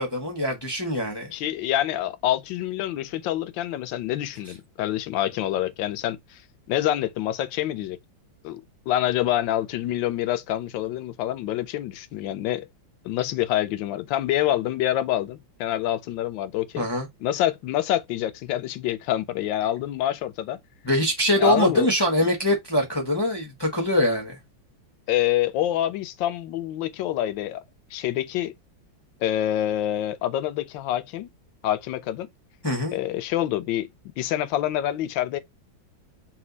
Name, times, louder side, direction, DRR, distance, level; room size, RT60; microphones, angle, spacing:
voice 1, 0.0-1.3 16.8-17.1 20.8-24.4 32.6-33.0, left 1 dB, 25° left, 0.5 m, -23 dB
voice 2, 1.3-6.4 6.7-8.0 8.4-12.7 13.0-16.9 17.2-20.6 21.4-21.9 25.1-27.6 27.9-28.5 29.2-31.3 31.6-32.3 32.9-35.4, left 13 dB, 80° left, 1.3 m, -26 dB
4.3 x 2.6 x 3.9 m
omnidirectional pair, 2.1 m